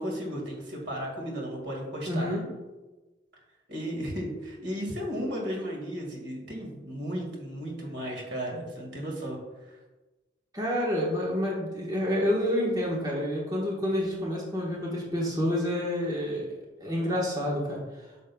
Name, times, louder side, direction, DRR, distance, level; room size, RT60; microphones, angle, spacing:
voice 1, 0.0-2.3 3.7-9.4 9.7-9.8, equal, 80° right, -1 dB, 2.1 m, -34 dB
voice 2, 2.1-2.5 10.5-16.5 16.8-17.8, equal, 20° right, -4 dB, 1.4 m, -28 dB
8.7 x 6.4 x 2.4 m, 1.1 s
head